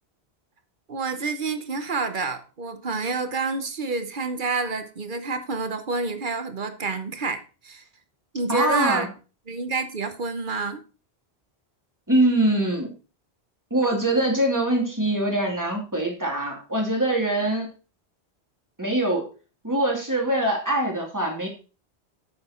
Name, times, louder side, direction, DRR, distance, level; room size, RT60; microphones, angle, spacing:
voice 1, 0.9-7.8 8.3-9.1 9.5-10.8, right 4 dB, 55° right, 1.1 m, -28 dB
voice 2, 8.5-9.1 12.1-12.9 13.7-17.7 18.8-19.3 19.6-21.5, right 1 dB, 15° right, 2.6 m, -23 dB
8.7 x 6.9 x 4.3 m
omnidirectional pair, 1.1 m